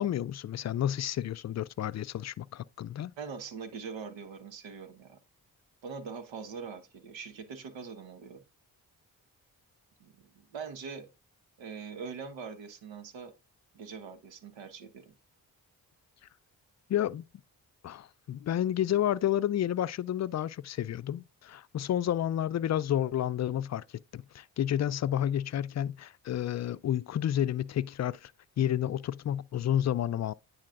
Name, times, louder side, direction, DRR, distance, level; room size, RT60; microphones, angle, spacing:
voice 1, 0.0-3.1 16.9-17.2 17.8-23.8 24.1-28.3 28.6-30.3, left 11 dB, 40° left, 0.4 m, -30 dB
voice 2, 3.2-5.2 5.8-8.4 10.0-11.1 11.6-13.3 13.7-15.1, right 5 dB, 80° right, 1.1 m, -42 dB
9.7 x 4.2 x 2.4 m
supercardioid pair, 40°, 45 cm